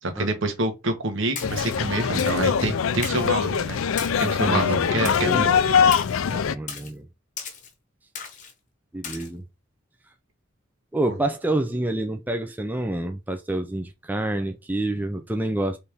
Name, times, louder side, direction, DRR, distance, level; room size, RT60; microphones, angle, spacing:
voice 1, 0.0-3.8 4.2-5.6 11.1-11.2, right 2 dB, 70° right, 1.2 m, -27 dB
sound 1, 1.4-6.5, left 7 dB, 85° left, 0.4 m, -22 dB
Splash splatter, 1.4-1.8 2.2-2.5 3.0-3.3 4.0-4.4 5.1-5.4 5.9-6.2 6.7-6.9 7.4-7.7 8.2-8.5 9.0-9.3, left 6 dB, 40° left, 1.0 m, -36 dB
voice 2, 4.5-4.9 5.2-5.8 6.3-7.1 8.9-9.4 10.9-15.8, right 1 dB, 10° right, 0.5 m, -28 dB
4.3 x 3.2 x 3.5 m
head